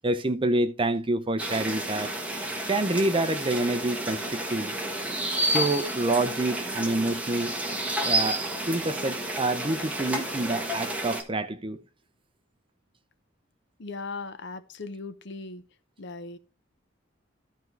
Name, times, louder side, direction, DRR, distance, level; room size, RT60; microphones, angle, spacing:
voice 1, 0.0-2.1 2.7-4.8 5.4-7.5 8.0-11.8, right 2 dB, 25° right, 0.6 m, -27 dB
sound 1, 1.4-11.2, right 1 dB, 5° right, 1.3 m, -30 dB
voice 2, 13.8-15.6 16.0-16.4, left 3 dB, 60° left, 0.8 m, -38 dB
13.5 x 4.6 x 3.2 m
head